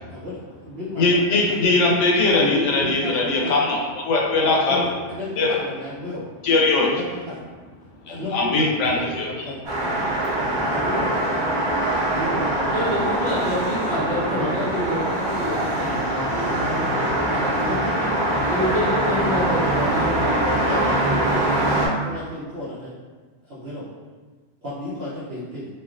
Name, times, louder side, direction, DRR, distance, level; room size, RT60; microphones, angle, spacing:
voice 1, 0.0-1.6 2.3-2.4 2.8-3.5 4.4-6.2 6.8-7.4 8.1-9.6 10.7-11.3 12.1-13.1 14.3-14.5 17.3-19.7 20.7-22.9 23.4-23.8 24.6-25.7, left 1 dB, 65° right, -10 dB, 0.9 m, -33 dB
voice 2, 1.0-4.8 5.4-5.5 6.4-6.9 8.1-9.3, left 3 dB, 85° left, -1 dB, 0.9 m, -20 dB
sound 1, 9.6-21.9, right 1 dB, 35° right, 0.4 m, -23 dB
voice 3, 12.7-17.8 18.5-21.3, left 1 dB, 55° left, -8 dB, 1.2 m, -27 dB
3.2 x 2.2 x 2.4 m, 1.4 s
omnidirectional pair, 1.2 m